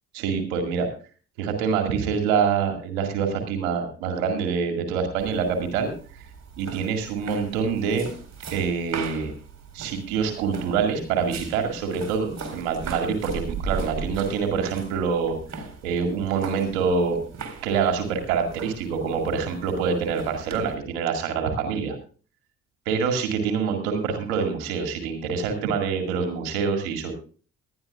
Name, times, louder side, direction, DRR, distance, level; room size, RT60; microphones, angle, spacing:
voice 1, 0.1-0.9 1.4-6.3 6.6-8.1 8.5-9.3 9.7-17.2 17.6-22.0 22.9-27.1, right 6 dB, 70° right, 4 dB, 2.2 m, -26 dB
sound 1, 5.2-20.8, right 5 dB, 40° right, 4.0 m, -39 dB
19.5 x 12.0 x 2.4 m, 0.38 s
figure-of-eight pair, 45°, 43 cm